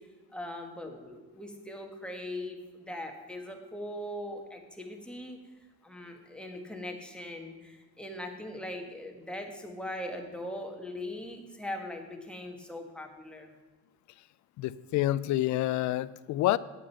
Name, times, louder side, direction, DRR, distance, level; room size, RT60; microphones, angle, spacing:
voice 1, 0.3-5.4 5.8-13.5, left 1 dB, 5° left, 2 dB, 1.5 m, -40 dB
voice 2, 14.6-16.6, left 15 dB, 55° left, 18 dB, 0.5 m, -28 dB
9.6 x 7.5 x 5.7 m, 1.2 s
cardioid pair, 110°, 35 cm